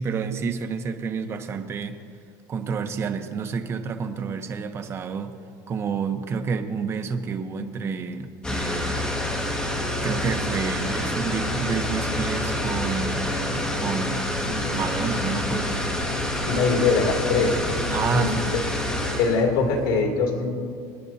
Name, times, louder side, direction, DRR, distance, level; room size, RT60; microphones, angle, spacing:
voice 1, 0.0-2.0 2.5-5.4 5.7-9.0 9.9-13.2 13.5-15.9 17.9-18.6, right 5 dB, 25° right, 7 dB, 0.8 m, -29 dB
sound 1, 8.4-19.4, left 1 dB, 10° left, 1.7 m, -27 dB
voice 2, 16.4-17.6 18.1-18.3 19.2-20.6, left 4 dB, 75° left, 0 dB, 2.5 m, -22 dB
27.5 x 9.9 x 2.7 m, 2.2 s
cardioid pair, 155°, 10 cm